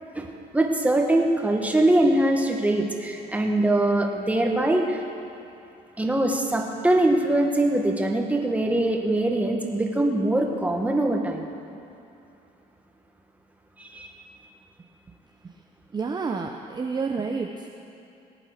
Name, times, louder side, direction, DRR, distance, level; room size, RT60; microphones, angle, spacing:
voice 1, 0.5-5.0 6.0-11.5 13.8-14.1, right 1 dB, 10° right, 2 dB, 1.7 m, -22 dB
voice 2, 15.9-17.7, right 4 dB, 25° right, 2 dB, 0.8 m, -29 dB
19.0 x 8.9 x 6.6 m, 2.7 s
cardioid pair, 110°, 17 cm